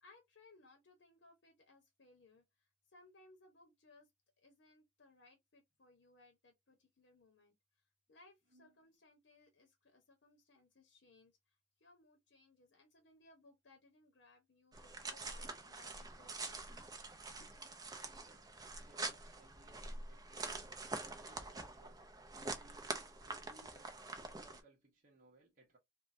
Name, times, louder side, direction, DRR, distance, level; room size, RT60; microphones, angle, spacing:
voice 1, 0.0-2.4 2.9-4.1 4.4-7.5 8.1-11.3 11.8-16.5 17.5-17.7 18.4-18.5, left 2 dB, 65° left, 0.7 m, -65 dB
sound 1, 14.7-24.6, right 3 dB, 20° right, 0.5 m, -46 dB
voice 2, 18.1-20.5 21.0-22.0 22.4-25.8, right 2 dB, 45° right, 0.9 m, -67 dB
3.2 x 2.1 x 2.5 m
head